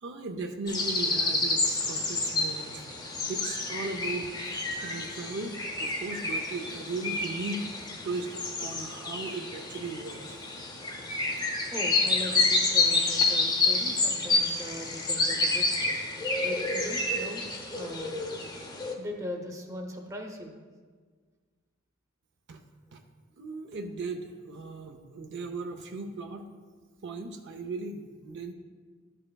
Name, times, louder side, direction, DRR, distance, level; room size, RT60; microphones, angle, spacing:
voice 1, 0.0-7.6 8.0-10.4 22.5-22.6 22.9-23.0 23.4-26.5 27.0-28.5, right 3 dB, 55° right, 4 dB, 0.5 m, -37 dB
sound 1, 0.7-18.9, left 3 dB, 20° left, 0.7 m, -29 dB
voice 2, 11.7-15.7 16.4-17.4 17.7-18.2 18.9-20.5, equal, 15° right, 2 dB, 0.7 m, -39 dB
12.0 x 5.4 x 2.3 m, 1.5 s
head